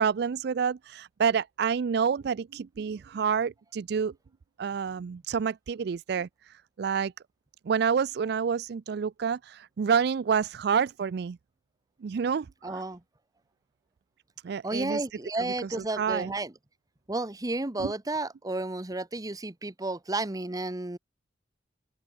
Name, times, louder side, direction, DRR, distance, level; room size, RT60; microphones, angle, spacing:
voice 1, 0.0-4.1 4.6-7.1 7.7-11.4 12.0-12.8 14.4-15.0 16.0-16.3, right 6 dB, 65° right, 0.4 m, -28 dB
voice 2, 12.6-13.0 14.6-16.5 17.1-21.0, right 2 dB, 20° right, 1.0 m, -32 dB
open air
head